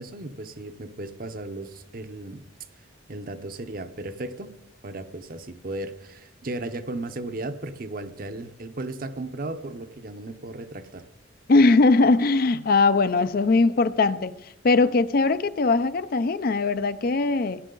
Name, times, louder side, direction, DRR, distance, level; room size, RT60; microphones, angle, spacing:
voice 1, 0.0-2.4 3.1-4.5 4.8-11.1, right 2 dB, 45° right, 0.8 m, -35 dB
voice 2, 11.5-14.4 14.6-17.6, left 3 dB, 50° left, 0.5 m, -20 dB
17.0 x 10.5 x 3.9 m
head